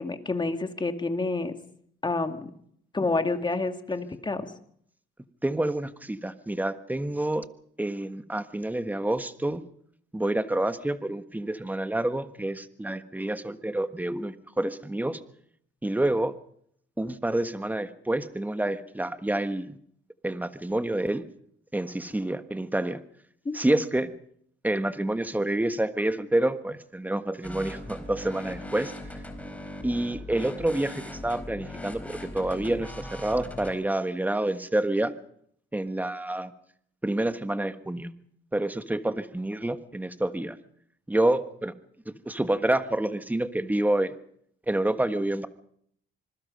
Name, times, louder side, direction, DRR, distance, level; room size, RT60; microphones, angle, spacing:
voice 1, 0.0-1.6 2.0-2.5 2.9-4.5 23.5-23.6, left 3 dB, 25° left, 7 dB, 2.2 m, -28 dB
voice 2, 5.4-7.5 7.8-9.6 10.1-15.2 15.8-16.3 17.0-19.8 20.2-21.2 21.7-23.0 23.5-24.1 24.6-28.9 29.8-35.1 35.7-36.5 37.0-38.1 38.5-40.6 41.1-41.7 42.0-44.1 44.7-45.5, right 1 dB, 10° right, 10 dB, 1.4 m, -28 dB
sound 1, 27.4-33.7, left 1 dB, 5° left, 4.2 m, -40 dB
26.0 x 20.5 x 5.4 m, 0.68 s
cardioid pair, 90°, 20 cm